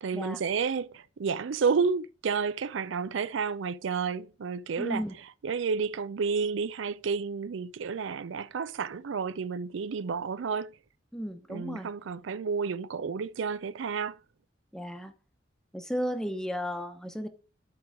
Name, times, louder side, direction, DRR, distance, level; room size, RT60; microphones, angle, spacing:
voice 1, 0.0-5.0 5.4-10.7 11.5-14.2, right 5 dB, 85° right, 0.4 m, -31 dB
voice 2, 4.8-5.1 11.1-11.9 14.7-15.1 15.7-17.3, equal, 5° left, 0.9 m, -34 dB
10.5 x 4.6 x 4.9 m
head